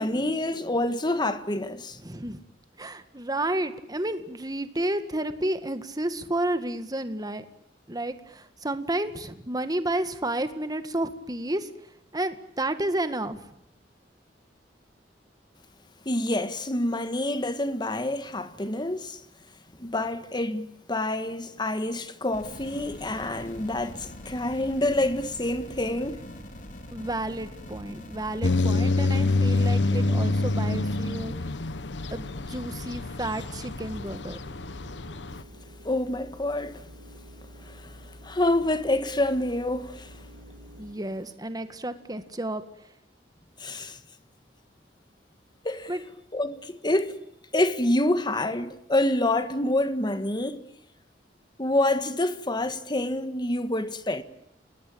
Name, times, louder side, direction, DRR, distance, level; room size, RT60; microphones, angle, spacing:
voice 1, 0.0-2.0 16.0-19.2 19.8-26.2 35.8-36.8 37.6-38.0 38.2-40.2 43.6-44.0 45.6-45.9 46.3-47.2 47.5-50.6 51.6-54.2, left 1 dB, 25° left, 1.7 m, -27 dB
voice 2, 2.0-2.4 2.8-7.5 7.9-11.7 12.1-13.4 26.9-31.3 32.1-34.4 40.8-42.6 45.9-46.0, right 1 dB, 20° right, 1.9 m, -31 dB
sound 1, 22.3-28.6, left 1 dB, 45° left, 4.1 m, -43 dB
sound 2, 28.4-35.4, left 2 dB, 85° left, 1.1 m, -26 dB
sound 3, 34.3-40.9, equal, 85° right, 4.1 m, -48 dB
29.5 x 20.0 x 8.8 m
head